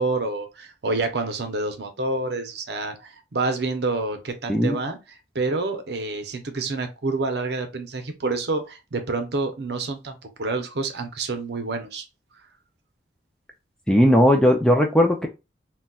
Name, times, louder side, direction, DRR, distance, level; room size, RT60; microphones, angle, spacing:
voice 1, 0.0-5.0 5.3-12.0, right 3 dB, 70° right, 0.7 m, -28 dB
voice 2, 13.9-15.3, equal, 5° left, 0.4 m, -17 dB
3.9 x 2.2 x 2.3 m
head